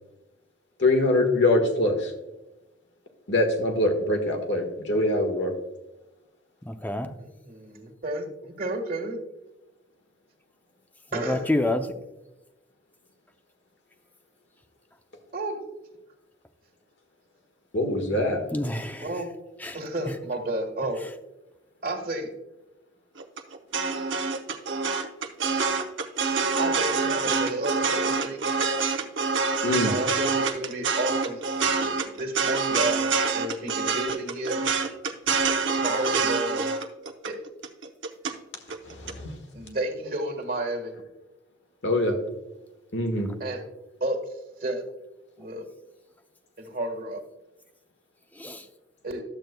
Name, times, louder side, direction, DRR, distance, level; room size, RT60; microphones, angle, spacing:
voice 1, 0.8-2.1 3.3-5.5 17.7-18.4 29.6-29.9 38.9-39.3 41.8-42.2 42.9-43.3, left 2 dB, 65° left, 3 dB, 1.5 m, -23 dB
voice 2, 6.7-7.1 11.1-11.9 18.5-19.1 19.6-19.8 48.4-48.6, left 1 dB, 10° left, 7 dB, 0.5 m, -28 dB
voice 3, 7.2-9.2 11.1-11.5 15.3-15.6 19.0-19.3 19.7-21.0 21.8-22.3 26.6-28.4 29.9-31.4 31.8-31.9 32.2-34.6 35.8-36.7 37.2-37.4 39.5-41.0 43.4-43.6 44.0-44.2 44.6-44.8 45.4-45.6 46.6-47.2 49.0-49.2, right 2 dB, 50° right, 3 dB, 1.5 m, -31 dB
sound 1, 23.2-38.3 38.7-39.1, right 4 dB, 75° right, 0.8 m, -26 dB
12.0 x 7.9 x 2.2 m, 0.99 s
head